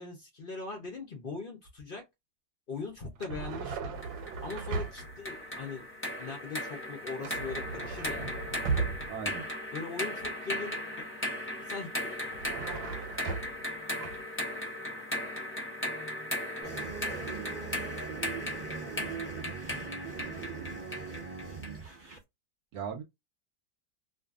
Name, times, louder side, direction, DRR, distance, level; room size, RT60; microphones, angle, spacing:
voice 1, 0.0-2.0 2.7-3.9 4.4-5.8 6.2-8.3 9.7-11.1 11.5-12.4 12.6-13.1 14.5-15.1 17.5-17.7 18.7-18.8 19.8-20.4, left 4 dB, 60° left, 0.5 m, -41 dB
sound 1, 3.2-5.2 7.2-9.3 12.2-13.7 14.0-14.2, right 4 dB, 85° right, 1.3 m, -36 dB
sound 2, 4.0-21.8, left 1 dB, 10° left, 0.6 m, -37 dB
voice 2, 9.1-9.4 22.7-23.0, right 7 dB, 70° right, 1.0 m, -37 dB
sound 3, 16.6-22.2, right 6 dB, 25° right, 0.9 m, -40 dB
2.6 x 2.5 x 2.4 m
omnidirectional pair, 1.9 m